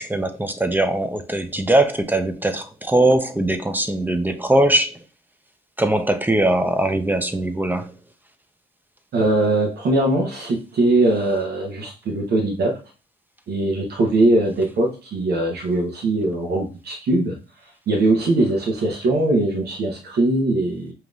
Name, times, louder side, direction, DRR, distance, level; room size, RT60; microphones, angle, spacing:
voice 1, 0.0-4.9 5.8-7.9, right 1 dB, 10° right, 0.7 m, -20 dB
voice 2, 9.1-12.7 13.5-17.4 17.9-20.9, right 2 dB, 80° right, 1.0 m, -21 dB
5.2 x 3.0 x 2.4 m
cardioid pair, 60°, 16 cm